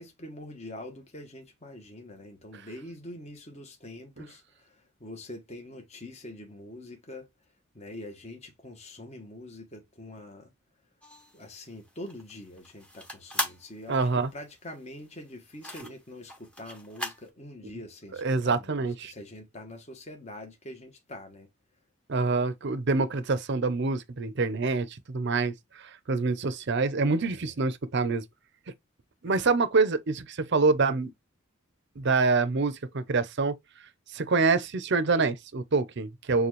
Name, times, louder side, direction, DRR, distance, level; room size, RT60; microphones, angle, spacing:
voice 1, 0.0-4.7 5.0-7.3 7.7-10.5 11.3-21.5 27.2-27.3 29.3-29.5, left 1 dB, 30° left, 0.9 m, -44 dB
sound 1, 11.0-17.3, left 1 dB, 5° left, 0.8 m, -38 dB
voice 2, 13.9-14.3 15.8-15.9 18.1-19.1 22.1-28.2 29.2-31.1 32.0-33.6 34.1-36.5, right 4 dB, 55° right, 0.6 m, -26 dB
6.7 x 2.3 x 3.1 m
head